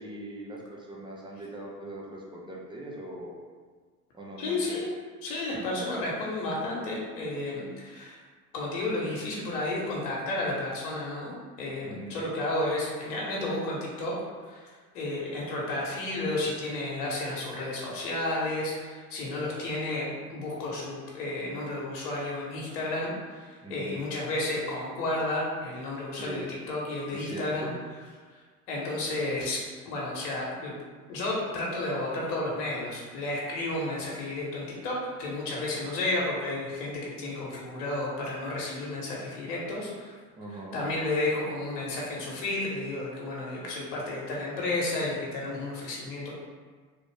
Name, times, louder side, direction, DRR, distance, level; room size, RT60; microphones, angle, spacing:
voice 1, 0.0-3.4 4.1-4.8 11.8-12.3 23.6-24.1 26.1-26.4 27.1-27.8 40.4-40.8, right 1 dB, 10° right, -3 dB, 0.5 m, -41 dB
voice 2, 4.4-4.9 5.2-8.2 8.5-14.1 14.4-27.7 28.7-30.7 31.1-40.1 40.5-46.3, left 2 dB, 70° left, -4 dB, 1.1 m, -32 dB
3.2 x 2.5 x 3.2 m, 1.5 s
hypercardioid pair, 80°, 48 cm